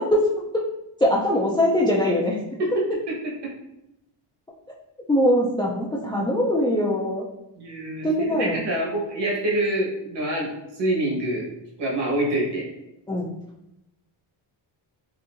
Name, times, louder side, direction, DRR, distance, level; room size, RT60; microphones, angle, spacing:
voice 1, 1.0-2.4 5.1-7.3 8.0-8.6 13.1-13.3, equal, 10° left, -4 dB, 0.3 m, -21 dB
voice 2, 3.1-3.5 7.6-10.5 10.8-11.5 11.8-12.7, right 1 dB, 55° right, -2 dB, 1.3 m, -26 dB
4.1 x 2.6 x 2.5 m, 0.88 s
cardioid pair, 110°, 49 cm